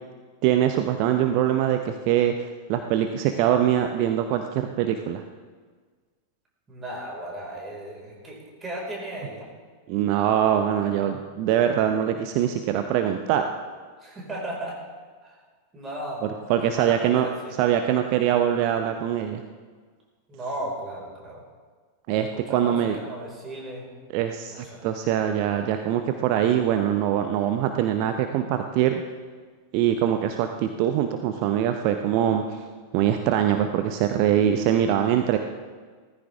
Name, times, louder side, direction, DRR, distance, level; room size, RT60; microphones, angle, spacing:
voice 1, 0.4-5.2 9.9-13.6 16.5-17.3 17.6-19.4 22.1-23.0 24.1-29.0 29.7-32.6 32.9-35.4, right 10 dB, 45° right, 7 dB, 0.8 m, -23 dB
voice 2, 6.7-9.5 14.0-14.8 15.2-15.4 15.7-17.5 20.3-21.4 22.2-23.9 24.5-24.9, right 1 dB, 20° right, -2 dB, 5.2 m, -35 dB
17.0 x 14.5 x 3.6 m, 1.5 s
figure-of-eight pair, 90°, 0 cm